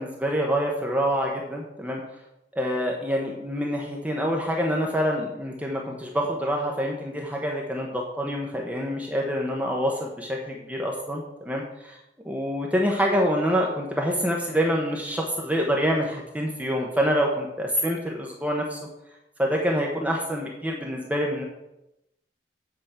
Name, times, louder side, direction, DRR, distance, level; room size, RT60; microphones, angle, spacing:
voice 1, 0.0-2.0 2.5-12.0 12.2-18.8 19.4-21.4, equal, 10° right, 0 dB, 1.0 m, -26 dB
8.0 x 5.2 x 7.4 m, 0.90 s
head